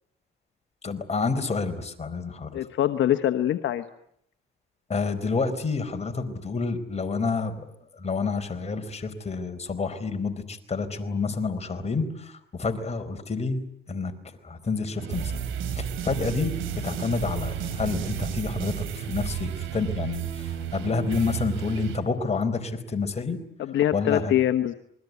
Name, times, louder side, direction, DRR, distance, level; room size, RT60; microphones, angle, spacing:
voice 1, 0.8-2.6 4.9-13.6 13.9-14.1 14.4-15.4 15.7-23.4 23.9-24.3, left 4 dB, 35° left, 6 dB, 4.4 m, -29 dB
voice 2, 2.5-3.8 23.6-24.7, left 12 dB, 70° left, 8 dB, 1.3 m, -24 dB
sound 1, 15.0-22.0, right 9 dB, 85° right, 3.7 m, -32 dB
27.5 x 21.5 x 9.5 m, 0.72 s
cardioid pair, 90°, 20 cm